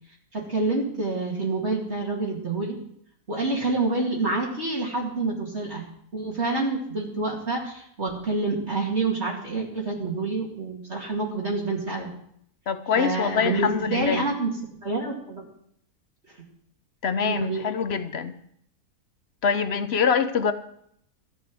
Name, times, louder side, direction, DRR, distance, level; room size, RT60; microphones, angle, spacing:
voice 1, 0.3-2.8 3.3-5.8 6.1-12.1 12.9-14.5 14.8-15.4 17.2-17.7, right 3 dB, 45° right, 2.6 m, -27 dB
voice 2, 12.7-14.2 17.0-18.3 19.4-20.5, left 6 dB, 55° left, 0.8 m, -24 dB
14.0 x 9.2 x 6.1 m
omnidirectional pair, 1.6 m